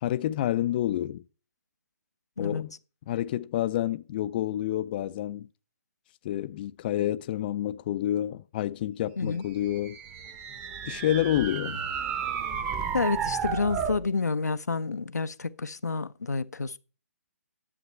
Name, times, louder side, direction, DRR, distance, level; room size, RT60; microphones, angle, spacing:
voice 1, 0.0-1.2 2.4-2.7 3.1-5.5 6.2-10.0 10.9-11.9, left 12 dB, 35° left, 0.5 m, -28 dB
sound 1, 9.6-14.0, right 7 dB, 20° right, 1.0 m, -32 dB
voice 2, 12.9-16.8, left 4 dB, 90° left, 0.7 m, -29 dB
11.0 x 7.2 x 4.4 m
figure-of-eight pair, 140°, 9 cm